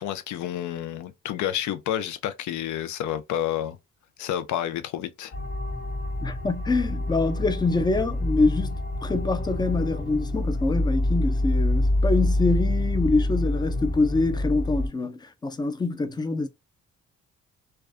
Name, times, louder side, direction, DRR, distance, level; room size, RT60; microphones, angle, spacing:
voice 1, 0.0-3.8 4.2-5.3, left 11 dB, 75° left, 0.5 m, -29 dB
sound 1, 5.3-14.9, left 1 dB, 30° left, 1.0 m, -26 dB
voice 2, 6.2-16.5, left 3 dB, 15° left, 0.4 m, -25 dB
2.3 x 2.2 x 2.3 m
cardioid pair, 90°, 30 cm